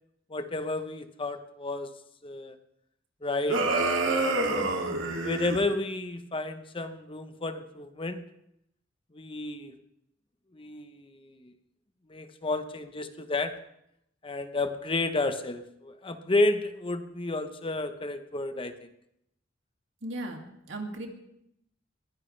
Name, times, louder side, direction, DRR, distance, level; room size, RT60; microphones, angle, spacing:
voice 1, 0.3-1.9 2.2-2.5 3.2-3.6 4.0-4.7 5.2-8.2 9.1-9.7 10.5-11.5 12.1-13.5 14.2-18.7, left 2 dB, 30° left, 8 dB, 1.0 m, -31 dB
sound 1, 3.5-5.6, right 2 dB, 85° right, 2.5 m, -27 dB
voice 2, 20.0-21.1, right 1 dB, 70° right, 2 dB, 2.5 m, -37 dB
21.5 x 17.0 x 3.3 m, 0.78 s
head